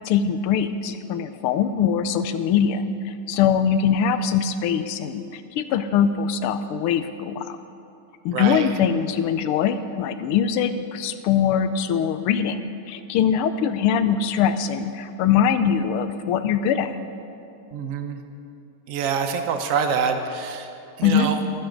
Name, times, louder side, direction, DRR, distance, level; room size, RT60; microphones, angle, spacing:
voice 1, 0.0-7.6 8.2-16.9 21.0-21.3, left 8 dB, 90° left, 11 dB, 1.6 m, -22 dB
voice 2, 8.3-8.7 17.7-18.2 18.9-20.7 21.0-21.4, right 6 dB, 90° right, 6 dB, 0.7 m, -25 dB
24.0 x 9.3 x 3.9 m, 2.6 s
omnidirectional pair, 2.4 m